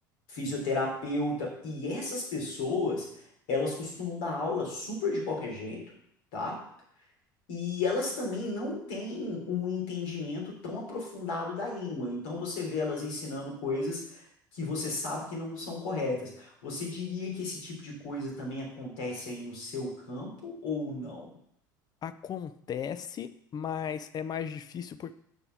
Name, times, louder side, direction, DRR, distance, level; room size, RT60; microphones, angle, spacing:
voice 1, 0.3-3.1 3.5-5.8 6.3-6.6 7.5-14.2 14.5-21.2, left 3 dB, 65° left, -2 dB, 3.5 m, -33 dB
voice 2, 22.0-25.1, left 8 dB, 40° left, 13 dB, 0.7 m, -36 dB
6.9 x 5.5 x 6.5 m, 0.71 s
hypercardioid pair, 70°, 11 cm